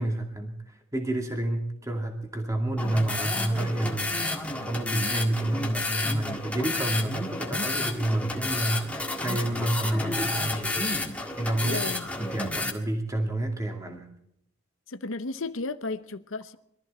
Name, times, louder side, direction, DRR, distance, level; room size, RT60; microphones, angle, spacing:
voice 1, 0.0-10.7 11.4-11.8 12.2-14.1, right 1 dB, 15° right, 2.4 m, -29 dB
sound 1, 2.8-12.7, left 2 dB, 5° left, 1.7 m, -30 dB
voice 2, 11.6-12.1 14.9-16.6, left 3 dB, 70° left, 0.8 m, -34 dB
23.0 x 14.0 x 4.3 m
head